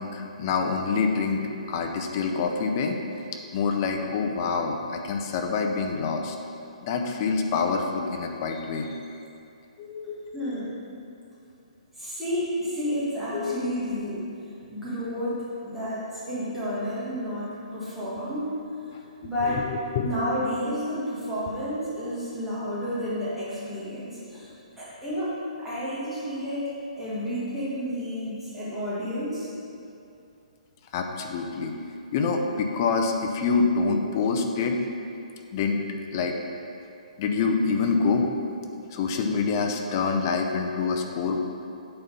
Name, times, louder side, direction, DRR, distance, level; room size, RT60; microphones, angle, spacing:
voice 1, 0.0-1.4 1.7-3.0 3.5-6.4 6.8-9.0 9.8-10.2 13.3-13.7 18.9-19.0 19.5-20.1 30.9-31.7 32.1-34.8 35.5-35.8 36.1-36.4 37.2-38.3 38.9-41.4, left 4 dB, 30° left, 4 dB, 0.6 m, -26 dB
voice 2, 10.3-10.9 12.0-14.3 14.7-18.5 19.2-19.7 20.0-24.5 24.8-25.3 25.6-26.7 27.0-29.5, equal, 5° right, -11 dB, 1.8 m, -31 dB
8.8 x 4.2 x 5.3 m, 2.6 s
hypercardioid pair, 165°, 4 cm